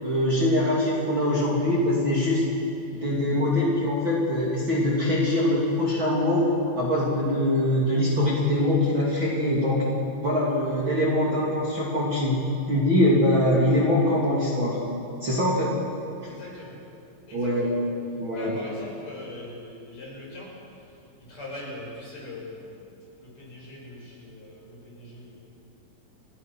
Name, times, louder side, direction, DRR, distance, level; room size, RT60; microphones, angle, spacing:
voice 1, 0.0-2.4 2.9-6.4 6.8-9.9 10.2-12.4 12.7-14.8 15.2-15.7 17.3-17.7 18.2-18.5, left 1 dB, 35° right, -5 dB, 3.1 m, -23 dB
voice 2, 16.3-16.8 17.3-17.8 18.3-20.5 20.9-22.9 23.2-25.3, left 1 dB, 45° left, -4 dB, 7.1 m, -41 dB
29.0 x 16.0 x 6.1 m, 2.7 s
omnidirectional pair, 4.5 m